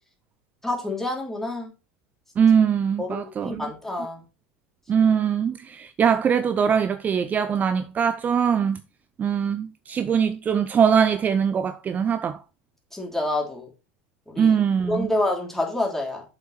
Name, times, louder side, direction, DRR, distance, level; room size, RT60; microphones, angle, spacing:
voice 1, 0.6-1.7 3.0-3.2 3.4-4.2 12.9-13.7 14.3-14.6 14.9-16.2, left 1 dB, 5° left, 3.4 m, -27 dB
voice 2, 2.4-3.7 4.0-4.1 4.9-8.8 9.2-12.4 14.4-15.1, right 7 dB, 30° right, 0.5 m, -22 dB
7.3 x 6.0 x 4.2 m
hypercardioid pair, 80°, 6 cm